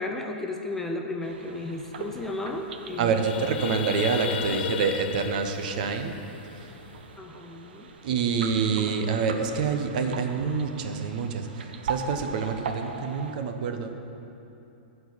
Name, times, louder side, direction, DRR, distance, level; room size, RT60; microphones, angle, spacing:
voice 1, 0.0-3.3 7.2-7.8 9.1-9.5, left 2 dB, 5° left, 2 dB, 0.5 m, -34 dB
sound 1, 1.2-13.4, right 5 dB, 80° right, 0.9 m, -41 dB
sound 2, 1.8-1.9 2.2-2.4 2.8-7.1, left 9 dB, 75° left, 0.4 m, -34 dB
voice 2, 3.0-6.2 8.0-13.9, right 5 dB, 55° right, 6 dB, 0.9 m, -27 dB
13.0 x 4.5 x 8.5 m, 2.8 s
hypercardioid pair, 155°, 5 cm